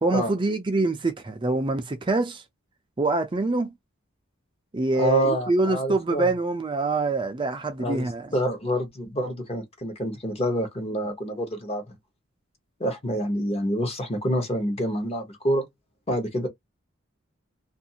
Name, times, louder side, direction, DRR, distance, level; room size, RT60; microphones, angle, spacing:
voice 1, 0.0-2.4 3.0-3.7 4.7-8.3, right 3 dB, 25° right, 0.4 m, -25 dB
voice 2, 4.9-6.3 7.8-11.8 12.8-15.6 16.1-16.5, equal, 30° left, 0.9 m, -27 dB
2.5 x 2.4 x 2.7 m
head